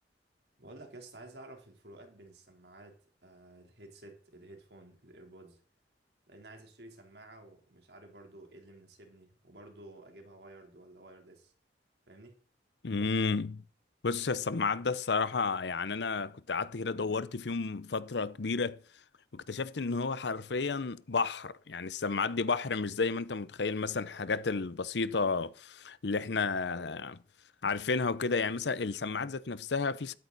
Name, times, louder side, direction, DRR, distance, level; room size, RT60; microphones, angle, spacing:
voice 1, 0.6-5.6 6.3-11.5 12.1-12.4, right 2 dB, 70° right, 3.6 m, -52 dB
voice 2, 12.8-13.6 14.0-18.8 19.3-27.2 27.6-30.1, left 4 dB, 75° left, 0.7 m, -32 dB
13.5 x 12.5 x 4.1 m
head